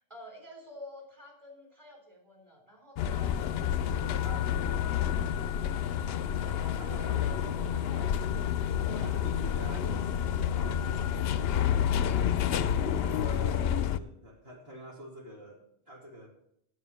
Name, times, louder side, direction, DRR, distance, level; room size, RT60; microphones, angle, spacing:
voice 1, 0.1-3.4 6.5-8.1 8.8-9.2, equal, 25° right, 1 dB, 3.8 m, -50 dB
sound 1, 3.0-14.0, left 9 dB, 65° left, 0.7 m, -29 dB
voice 2, 3.9-5.6 6.8-8.1 9.0-11.8 13.0-16.3, right 1 dB, 60° right, -1 dB, 2.7 m, -47 dB
9.3 x 8.1 x 7.0 m, 0.71 s
omnidirectional pair, 1.2 m